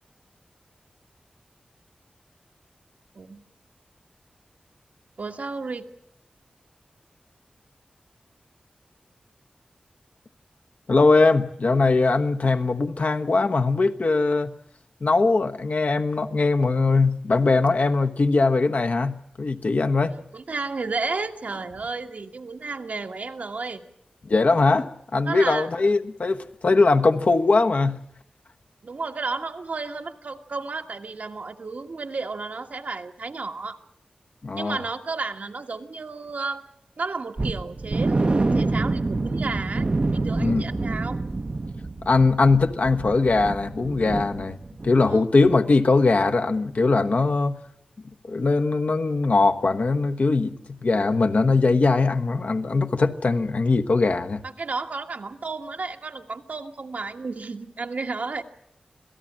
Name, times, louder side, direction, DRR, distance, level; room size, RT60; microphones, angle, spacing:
voice 1, 5.2-5.9 20.0-23.8 25.2-25.7 28.8-33.8 34.5-36.6 37.0-41.2 45.1-45.2 54.4-58.4, right 4 dB, 70° right, 1.6 m, -32 dB
voice 2, 10.9-14.5 15.0-20.2 24.2-28.0 34.4-34.8 40.4-40.6 42.0-44.6 44.8-47.6 48.2-54.4, left 3 dB, 65° left, 1.2 m, -21 dB
sound 1, 37.4-45.1 45.4-45.6 46.0-46.1, right 3 dB, 45° right, 0.9 m, -27 dB
26.5 x 17.0 x 7.5 m
wide cardioid pair, 70°, 3 cm